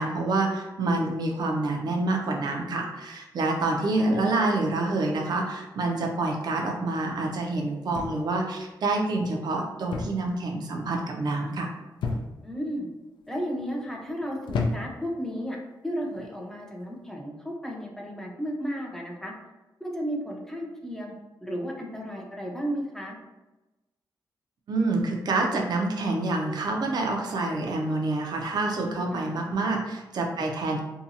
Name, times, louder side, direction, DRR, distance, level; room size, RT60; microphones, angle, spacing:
voice 1, 0.0-11.7 24.7-30.8, right 2 dB, 60° right, 1 dB, 0.6 m, -27 dB
sound 1, 7.9-8.5 9.9-10.3 10.6-11.0 12.0-12.6 13.3-13.7 14.5-15.1 16.1-16.3, left 3 dB, 85° left, 0.3 m, -31 dB
voice 2, 12.4-12.9 13.3-15.6 15.8-19.3 19.8-21.1 21.4-23.2 29.1-29.4, equal, 5° left, -1 dB, 0.4 m, -33 dB
2.7 x 2.3 x 2.7 m, 1.1 s
cardioid pair, 110°, 8 cm